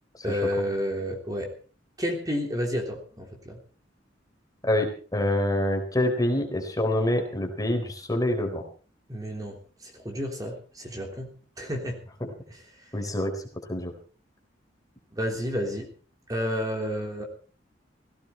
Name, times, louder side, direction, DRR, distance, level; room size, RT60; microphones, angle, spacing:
voice 1, 0.2-1.5 2.0-3.6 9.1-12.0 12.5-12.6 15.1-15.9 16.3-17.3, equal, 20° right, 1 dB, 3.4 m, -31 dB
voice 2, 4.6-8.6 12.2-12.3 12.9-13.3 13.7-13.9, left 1 dB, 20° left, 3 dB, 4.0 m, -26 dB
17.0 x 17.0 x 4.4 m, 0.39 s
head